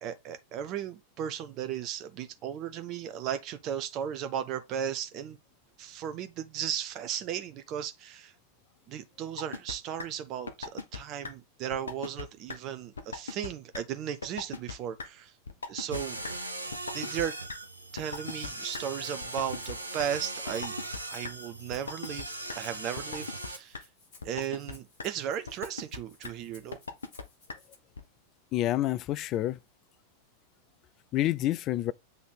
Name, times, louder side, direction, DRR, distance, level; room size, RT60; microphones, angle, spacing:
voice 1, 0.0-5.4 5.8-8.3 8.9-15.3 15.7-16.2 16.9-17.3 17.9-20.8 21.1-23.8 24.2-26.8, right 9 dB, 35° right, 0.6 m, -36 dB
sound 1, 9.4-9.7 10.0-10.1 10.5-11.0 11.2-11.3 11.7-12.2 12.5-12.6 13.0-13.5 13.7-13.8 14.2-14.7 15.0-15.1 15.5-16.0 16.2-16.3 16.7-17.2 17.5-17.6 18.0-18.8 19.2-20.1 20.5-21.0 21.2-21.3 21.7-22.2 22.5-22.6 23.0-23.5 23.7-23.8 24.2-24.7 25.0-25.1 25.5-26.0 26.2-26.3 26.7-27.2 27.5-27.6 28.0-28.1, left 4 dB, 75° left, 0.9 m, -37 dB
sound 2, 15.9-23.6, right 2 dB, 85° right, 0.9 m, -39 dB
Rattle (instrument), 18.1-27.7, left 3 dB, 55° left, 3.5 m, -58 dB
voice 2, 28.5-29.6 31.1-31.9, left 14 dB, 35° left, 0.4 m, -28 dB
7.9 x 3.4 x 3.8 m
figure-of-eight pair, 90°, 0 cm